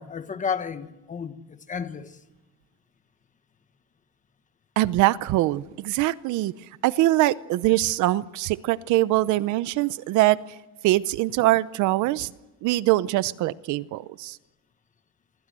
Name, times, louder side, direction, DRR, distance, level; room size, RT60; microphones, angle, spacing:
voice 1, 0.0-2.2, left 6 dB, 25° left, 1.3 m, -32 dB
voice 2, 4.8-6.5 6.8-10.4 10.8-12.3 12.6-14.4, right 17 dB, 60° right, 0.8 m, -23 dB
27.0 x 23.5 x 7.7 m
cardioid pair, 150°, 33 cm